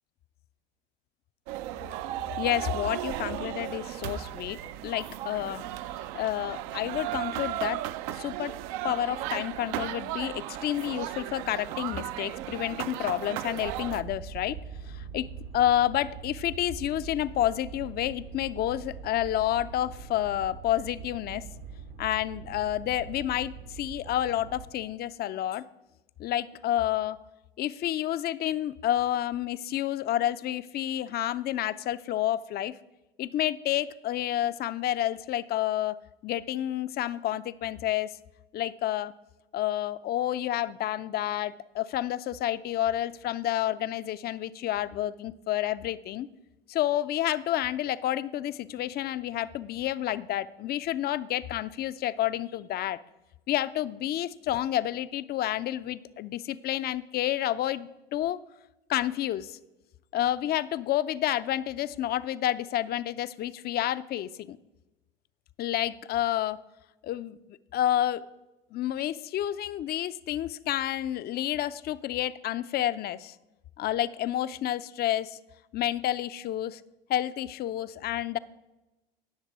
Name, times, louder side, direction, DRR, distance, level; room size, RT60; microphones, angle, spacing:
sound 1, 1.5-14.0, right 14 dB, 55° right, 0.6 m, -35 dB
voice 1, 2.4-5.6 6.1-7.8 8.1-8.5 8.8-14.6 14.9-15.3 15.5-21.4 22.0-25.6 26.2-27.2 27.6-32.7 33.2-36.0 36.2-38.1 38.5-39.1 39.5-46.3 46.7-53.0 53.5-58.4 58.9-59.6 60.1-64.6 65.6-66.6 67.0-67.4 67.7-68.2 68.7-73.4 73.8-75.4 75.7-76.8 77.1-78.4, left 12 dB, 35° left, 16 dB, 0.5 m, -29 dB
sound 2, 13.6-24.7, right 6 dB, 75° right, 1.5 m, -43 dB
17.5 x 6.5 x 4.8 m, 1.0 s
figure-of-eight pair, 75°, 29 cm